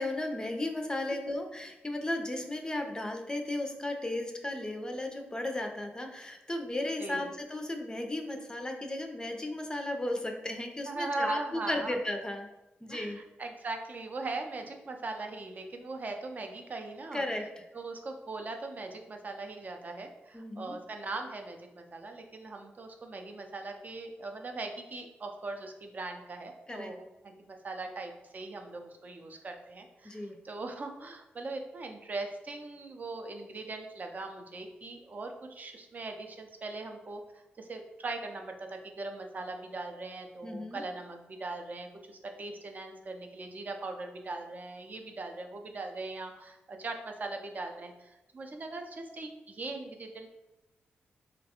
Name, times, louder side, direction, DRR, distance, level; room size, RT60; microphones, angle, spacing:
voice 1, 0.0-12.5 12.8-13.2 17.1-17.6 20.3-20.8 26.7-26.9 30.0-30.4 40.4-40.8, left 1 dB, 20° left, 3 dB, 0.5 m, -35 dB
voice 2, 7.0-7.3 10.9-12.0 12.9-17.2 17.7-50.3, right 3 dB, 45° right, 4 dB, 0.5 m, -40 dB
3.9 x 2.2 x 2.8 m, 0.98 s
cardioid pair, 65°, 4 cm